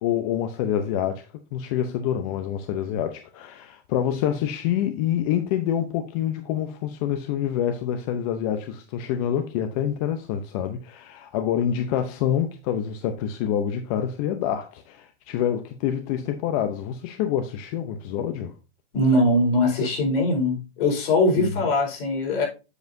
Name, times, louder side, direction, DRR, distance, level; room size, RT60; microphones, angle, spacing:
voice 1, 0.0-18.5 21.4-21.7, left 9 dB, 35° left, 0.7 m, -27 dB
voice 2, 18.9-22.5, left 1 dB, 65° left, 4.3 m, -21 dB
8.0 x 7.2 x 2.6 m
hypercardioid pair, 150°, 31 cm